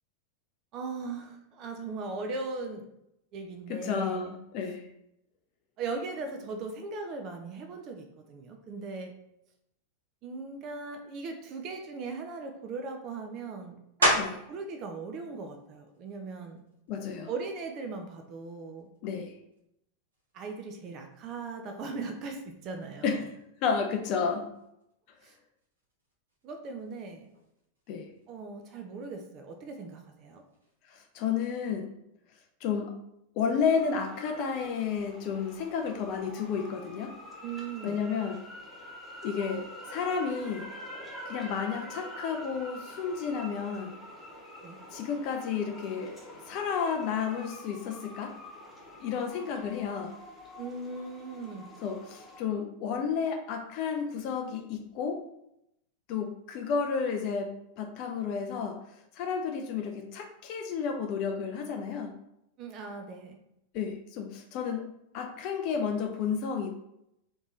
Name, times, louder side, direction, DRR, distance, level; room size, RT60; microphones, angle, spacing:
voice 1, 0.7-2.9 3.3-4.3 5.8-9.1 10.2-14.1 14.5-16.6 17.3-18.9 20.3-23.2 25.2-25.3 26.4-27.3 28.3-30.4 37.4-38.0 44.6-44.8 50.6-51.7 62.6-63.4, right 4 dB, 35° right, 5 dB, 0.6 m, -39 dB
voice 2, 3.7-4.9 14.1-14.4 16.9-17.3 19.0-19.4 23.0-23.2 23.6-24.5 27.9-28.1 30.9-31.9 32.6-32.9 33.4-37.1 37.8-38.4 39.2-40.7 41.3-44.0 44.9-46.2 46.5-48.3 49.0-50.2 51.8-55.2 56.1-58.8 59.1-62.1 63.7-64.9 65.1-66.7, left 6 dB, 45° left, 4 dB, 0.5 m, -31 dB
sound 1, 14.0-14.6 15.2-19.6 20.1-25.3 25.6-31.2, equal, 75° right, 1.2 m, -36 dB
sound 2, 33.6-52.4, equal, 5° left, 1.1 m, -46 dB
3.6 x 3.0 x 3.8 m, 0.82 s
figure-of-eight pair, 90°, 0 cm